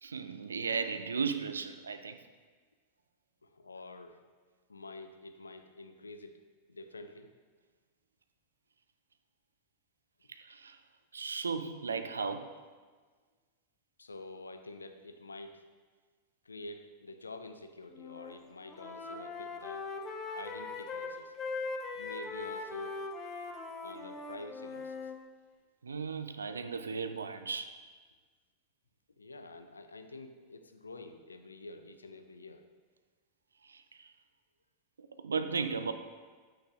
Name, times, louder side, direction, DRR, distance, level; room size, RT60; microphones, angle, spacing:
voice 1, 0.0-2.2 10.3-10.8 11.1-12.5 25.8-27.8 33.6-34.1 35.0-35.9, right 5 dB, 75° right, 9 dB, 0.4 m, -36 dB
voice 2, 3.4-4.2 4.7-6.4 6.7-7.3 14.0-15.7 16.4-19.9 20.3-21.3 21.9-23.0 23.8-25.1 29.2-32.6, left 2 dB, 75° left, 9 dB, 0.4 m, -48 dB
Wind instrument woodwind instrument, 17.9-18.3 18.6-25.2, left 3 dB, 30° left, 0.6 m, -40 dB
8.4 x 5.8 x 2.5 m, 1.5 s
figure-of-eight pair, 90°, 0 cm